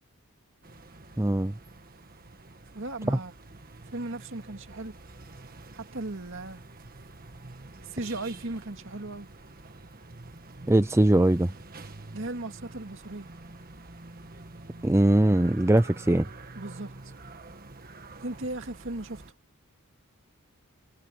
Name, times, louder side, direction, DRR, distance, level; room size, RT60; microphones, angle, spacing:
sound 1, 0.6-19.3, right 2 dB, 40° right, 1.6 m, -47 dB
voice 1, 1.2-1.5 3.1-3.2 10.7-11.5 14.8-16.3, right 1 dB, 10° right, 0.5 m, -21 dB
voice 2, 2.7-3.3 3.9-5.0 5.7-6.6 7.9-9.3 12.1-13.3 16.5-16.9 18.2-19.2, right 2 dB, 60° right, 2.3 m, -36 dB
head